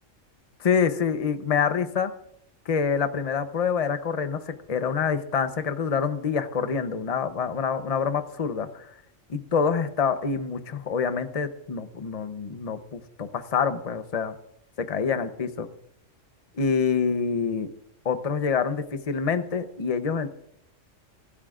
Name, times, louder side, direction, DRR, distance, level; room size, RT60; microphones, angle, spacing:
voice 1, 0.6-2.1 2.7-8.9 9.3-14.3 14.8-15.7 16.6-17.7 18.0-20.3, left 6 dB, 35° left, 10 dB, 0.8 m, -26 dB
23.5 x 13.5 x 2.5 m, 0.75 s
omnidirectional pair, 1.3 m